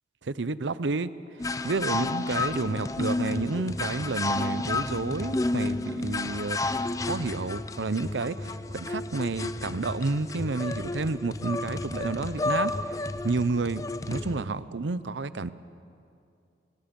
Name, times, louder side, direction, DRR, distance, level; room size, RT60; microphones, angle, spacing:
voice 1, 0.2-1.1 1.6-12.7 13.0-15.5, right 3 dB, 85° right, 0.7 m, -30 dB
sound 1, 1.4-14.5, left 2 dB, 20° left, 0.4 m, -31 dB
25.0 x 23.5 x 5.3 m
head